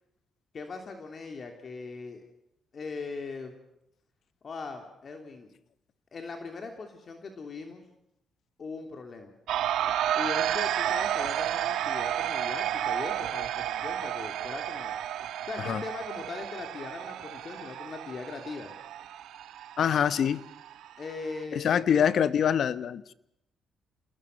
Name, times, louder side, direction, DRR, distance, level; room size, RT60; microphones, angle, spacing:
voice 1, 0.5-2.2 2.7-3.5 4.4-5.5 6.1-7.8 8.6-9.3 10.1-15.0 15.5-18.7 21.0-21.9, left 4 dB, 45° left, 4 dB, 3.2 m, -40 dB
sound 1, 9.5-21.4, right 11 dB, 80° right, 1.3 m, -32 dB
voice 2, 19.8-20.4 21.5-23.1, left 8 dB, 60° left, 15 dB, 1.0 m, -25 dB
28.5 x 20.5 x 6.7 m, 0.79 s
cardioid pair, 90°, 0 cm